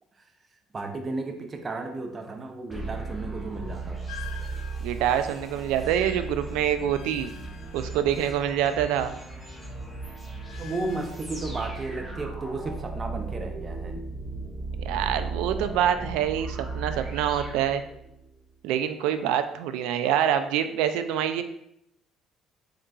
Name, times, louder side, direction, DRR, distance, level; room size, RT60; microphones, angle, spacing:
voice 1, 0.7-4.1 10.6-14.0, right 3 dB, 30° right, 5 dB, 0.6 m, -34 dB
sound 1, 2.7-18.3, right 3 dB, 10° right, 1.2 m, -36 dB
sound 2, 4.1-8.8 9.1-11.1, left 10 dB, 85° left, 0.4 m, -48 dB
voice 2, 4.8-7.3 7.7-9.1 14.8-17.8 18.6-21.4, right 10 dB, 85° right, 9 dB, 0.3 m, -26 dB
3.9 x 3.6 x 2.3 m, 0.77 s
supercardioid pair, 90°, 0 cm